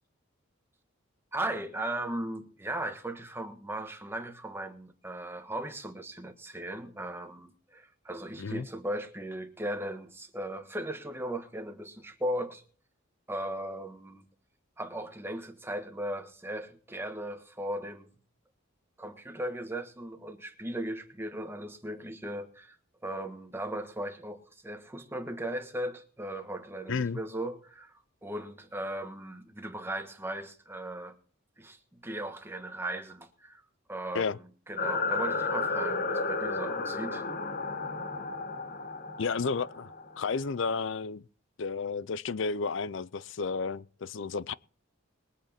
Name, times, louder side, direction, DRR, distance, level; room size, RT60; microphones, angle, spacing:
voice 1, 1.3-12.6 13.3-14.2 14.8-18.1 19.0-22.8 23.0-31.1 31.6-33.6 33.9-37.3, right 1 dB, 10° right, 1.3 m, -37 dB
voice 2, 26.9-27.2 34.1-34.4 39.2-41.2 41.6-44.5, left 4 dB, 60° left, 0.5 m, -32 dB
sound 1, 34.8-40.7, left 3 dB, 45° left, 1.2 m, -33 dB
22.0 x 8.3 x 4.3 m
head